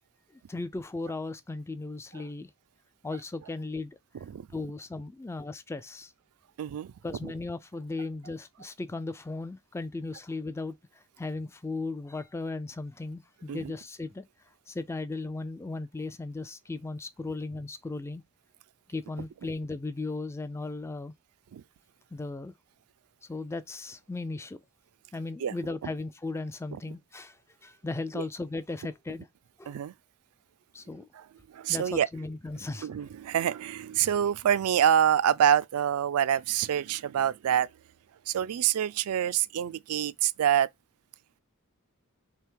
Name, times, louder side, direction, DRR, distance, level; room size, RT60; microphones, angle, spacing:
voice 1, 0.3-2.5 3.0-4.0 4.5-6.1 7.0-14.3 14.7-18.2 18.9-21.1 22.1-22.5 23.3-24.6 25.1-27.4 27.6-29.3 29.6-29.7 30.7-31.1 31.7-32.9, left 3 dB, 10° left, 0.3 m, -36 dB
voice 2, 6.6-6.9 7.2-7.3 13.5-13.7 21.5-21.6 25.4-25.5 28.2-28.3 29.7-29.9 31.5-32.1 32.8-37.7 38.3-40.7, right 9 dB, 75° right, 0.3 m, -26 dB
3.5 x 3.3 x 4.5 m
head